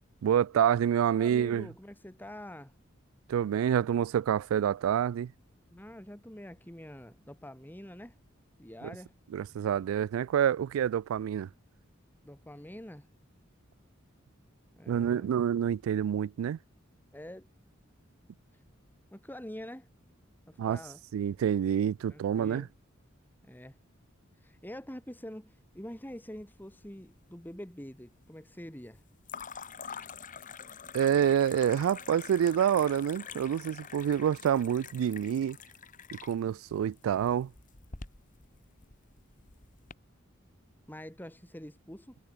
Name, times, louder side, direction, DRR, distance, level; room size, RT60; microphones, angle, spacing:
voice 1, 0.2-1.7 3.3-5.3 9.3-11.5 14.9-16.6 20.6-20.8 21.1-22.7 30.9-35.6 36.1-37.5, right 9 dB, 85° right, 0.3 m, -27 dB
voice 2, 1.2-2.7 5.7-8.2 8.6-9.1 12.2-13.1 14.7-15.4 17.1-17.5 19.1-19.9 20.5-21.0 22.1-22.7 23.4-23.8 24.4-29.0 40.9-42.2, equal, 10° left, 3.4 m, -45 dB
sound 1, 26.1-26.9 27.2-27.8 29.2-39.9, left 6 dB, 40° left, 2.4 m, -46 dB
head